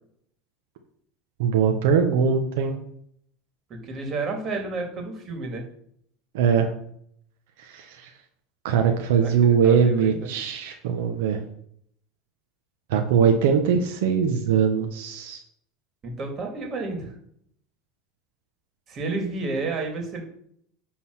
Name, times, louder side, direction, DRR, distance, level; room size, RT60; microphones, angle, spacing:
voice 1, 1.4-2.8 6.3-6.7 7.6-8.1 8.6-11.4 12.9-15.4, right 7 dB, 80° right, 4 dB, 1.1 m, -21 dB
voice 2, 3.7-5.6 9.1-10.3 16.0-17.1 18.9-20.2, right 3 dB, 35° right, 3 dB, 2.6 m, -31 dB
10.5 x 3.9 x 6.3 m, 0.68 s
supercardioid pair, 120°, 0 cm